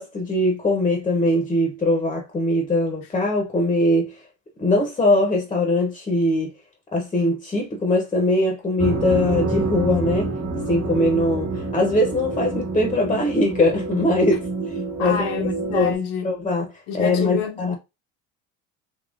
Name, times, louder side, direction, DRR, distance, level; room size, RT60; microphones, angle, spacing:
voice 1, 0.0-4.1 4.6-6.5 6.9-10.3 10.7-15.3 15.7-16.0 16.2-16.7 16.9-17.8, left 1 dB, 20° left, 0.8 m, -21 dB
sound 1, 8.8-16.0, right 3 dB, 30° right, 1.3 m, -27 dB
voice 2, 12.7-13.2 15.0-16.3 16.9-17.8, left 6 dB, 80° left, 0.9 m, -29 dB
3.5 x 2.9 x 2.5 m
cardioid pair, 125°, 32 cm